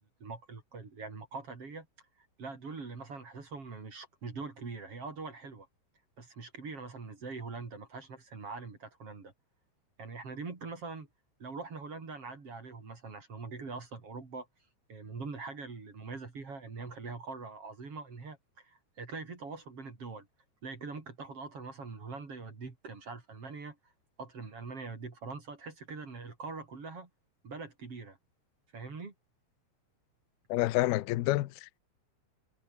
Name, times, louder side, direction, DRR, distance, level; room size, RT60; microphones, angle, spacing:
voice 1, 0.2-1.9 2.2-5.7 6.2-9.3 10.0-11.1 11.4-14.5 14.9-20.3 20.6-23.9 24.2-27.1 27.4-28.2 28.7-29.1, right 4 dB, 30° right, 4.2 m, -43 dB
voice 2, 30.5-31.8, left 17 dB, 70° left, 2.5 m, -29 dB
omnidirectional pair, 5.6 m